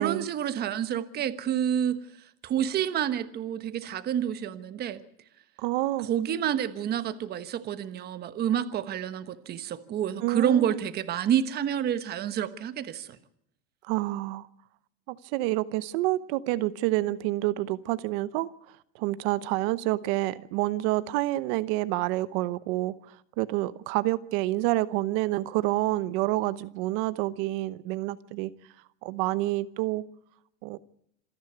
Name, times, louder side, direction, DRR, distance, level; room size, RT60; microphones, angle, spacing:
voice 1, 0.0-2.0 2.4-5.0 6.0-13.1, right 9 dB, 25° right, 1.3 m, -28 dB
voice 2, 5.6-6.1 10.2-10.8 13.8-14.5 15.1-18.5 18.9-23.0 23.4-28.5 29.0-30.0 30.6-30.8, right 17 dB, 50° right, 1.0 m, -28 dB
27.0 x 10.5 x 9.4 m
supercardioid pair, 155°, 36 cm